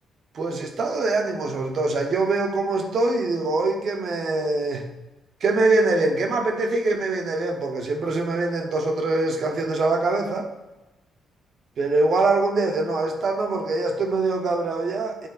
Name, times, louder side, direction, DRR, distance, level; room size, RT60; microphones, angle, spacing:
voice 1, 0.3-4.9 5.4-10.5 11.8-15.3, right 3 dB, 55° right, 3 dB, 1.1 m, -23 dB
9.3 x 3.9 x 4.1 m, 1.1 s
cardioid pair, 90°, 0 cm